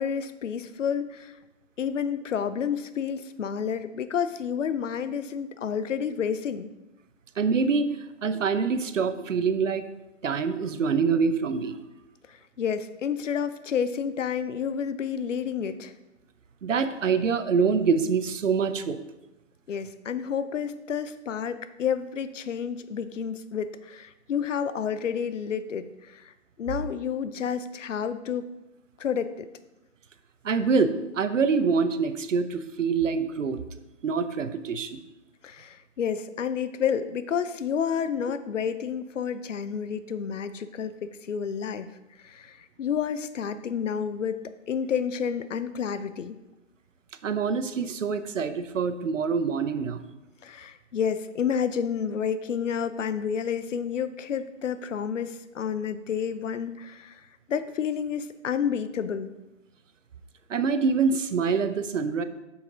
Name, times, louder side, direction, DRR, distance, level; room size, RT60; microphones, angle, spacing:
voice 1, 0.0-1.3 1.8-6.7 12.3-15.9 19.7-26.3 26.6-28.5 29.0-29.5 35.4-41.9 42.2-46.4 50.4-57.2 57.5-59.3, left 7 dB, 75° left, 13 dB, 0.6 m, -30 dB
voice 2, 7.4-8.0 8.2-9.9 10.2-11.8 16.6-19.0 30.4-33.6 34.0-35.0 47.2-50.0 60.5-62.2, right 5 dB, 80° right, 11 dB, 0.7 m, -25 dB
8.3 x 5.9 x 3.8 m, 0.99 s
figure-of-eight pair, 135°, 37 cm